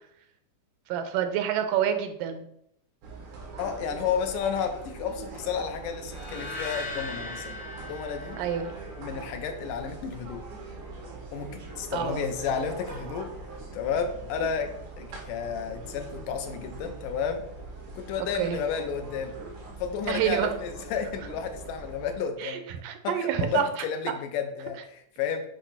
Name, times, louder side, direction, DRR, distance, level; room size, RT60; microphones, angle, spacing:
voice 1, 0.9-2.5 8.4-8.7 11.9-12.2 18.2-18.6 20.1-20.5 22.4-23.6, right 9 dB, 85° right, 8 dB, 2.4 m, -28 dB
sound 1, 3.0-22.2, right 3 dB, 70° right, 3.2 m, -42 dB
voice 2, 3.6-8.4 9.0-10.4 11.3-13.3 13.7-14.7 15.0-17.5 18.0-19.3 19.8-22.6 23.0-25.4, left 7 dB, 90° left, 6 dB, 2.5 m, -32 dB
sound 2, 6.1-9.3, left 2 dB, 55° left, 1.1 m, -39 dB
8.2 x 3.3 x 5.8 m, 0.73 s
omnidirectional pair, 3.7 m